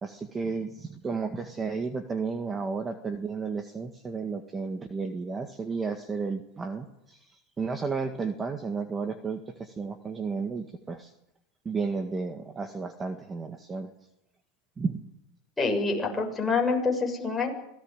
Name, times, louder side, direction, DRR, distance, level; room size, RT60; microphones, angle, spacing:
voice 1, 0.0-11.1 11.7-13.9 14.8-15.1, right 4 dB, 20° right, 7 dB, 1.8 m, -33 dB
voice 2, 15.6-17.5, left 4 dB, 10° left, 0 dB, 7.0 m, -26 dB
26.0 x 18.5 x 9.0 m, 0.82 s
supercardioid pair, 130°, 0 cm